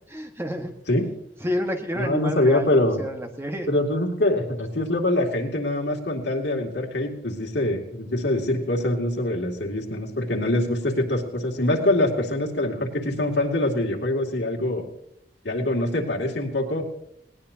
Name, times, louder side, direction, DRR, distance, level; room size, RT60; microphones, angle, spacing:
voice 1, 0.1-0.7 1.4-2.7 3.0-3.7, equal, 15° right, 4 dB, 1.5 m, -29 dB
voice 2, 2.0-3.0 3.7-14.8 15.4-16.8, left 1 dB, 80° left, 1 dB, 2.6 m, -24 dB
20.0 x 18.5 x 2.9 m, 0.76 s
head